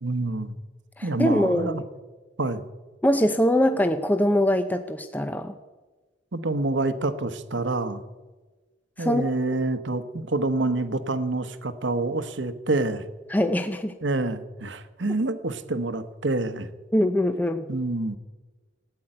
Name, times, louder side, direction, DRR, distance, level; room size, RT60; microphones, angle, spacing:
voice 1, 0.0-0.5 1.0-1.8 2.4-2.7 6.3-8.0 9.0-13.1 14.0-16.7 17.7-18.2, right 2 dB, 70° right, 12 dB, 1.0 m, -27 dB
voice 2, 1.0-1.8 3.0-5.5 9.0-9.3 13.3-13.9 16.9-17.6, left 1 dB, 10° left, 8 dB, 0.6 m, -23 dB
16.0 x 9.3 x 8.9 m, 1.3 s
head